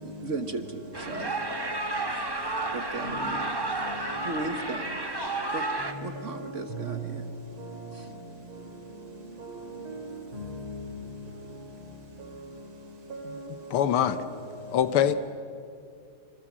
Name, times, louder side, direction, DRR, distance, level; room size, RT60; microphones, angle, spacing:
voice 1, 0.0-1.4 2.7-3.6 4.2-5.0 5.5-5.6 6.0-7.2 7.9-8.1 13.2-13.4, right 3 dB, 45° right, 1.2 m, -36 dB
sound 1, 0.9-5.9, right 2 dB, 15° right, 1.1 m, -31 dB
voice 2, 6.3-6.8 9.4-10.0 10.3-10.8 13.1-13.5 14.0-14.1, right 1 dB, 75° right, 4.8 m, -39 dB
voice 3, 13.7-14.2 14.7-15.1, left 10 dB, 85° left, 1.8 m, -23 dB
27.5 x 26.5 x 7.5 m
omnidirectional pair, 2.3 m